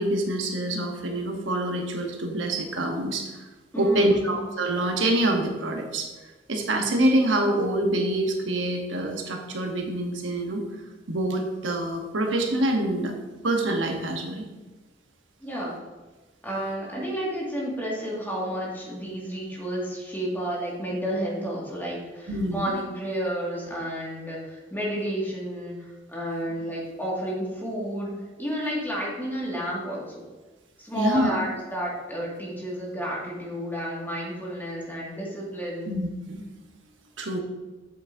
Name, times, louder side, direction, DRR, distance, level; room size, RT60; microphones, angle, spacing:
voice 1, 0.0-3.3 3.8-6.1 6.5-10.6 11.1-13.1 13.4-14.4 22.3-22.7 31.0-31.4 35.9-36.4 37.2-37.4, right 1 dB, 85° right, 2 dB, 1.1 m, -25 dB
voice 2, 3.7-4.4 15.4-15.8 16.4-28.1 28.4-30.2 30.8-35.9, equal, 10° left, -4 dB, 2.0 m, -31 dB
8.0 x 7.9 x 2.7 m, 1.2 s
head